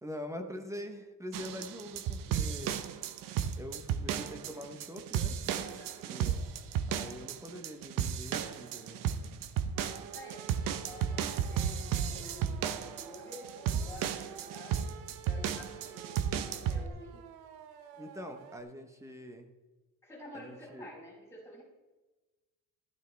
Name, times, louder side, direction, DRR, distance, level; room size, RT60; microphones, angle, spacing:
voice 1, 0.0-2.8 3.6-6.5 6.9-9.1 18.0-19.5 20.3-20.9, equal, 10° right, 5 dB, 1.0 m, -44 dB
sound 1, 1.3-16.9, right 8 dB, 60° right, 0.9 m, -34 dB
voice 2, 5.7-6.1 10.1-17.3 20.0-21.6, left 1 dB, 5° left, -3 dB, 4.8 m, -50 dB
sound 2, 9.7-18.6, right 7 dB, 85° right, 1.3 m, -51 dB
14.5 x 12.5 x 3.4 m, 1.1 s
cardioid pair, 170°, 37 cm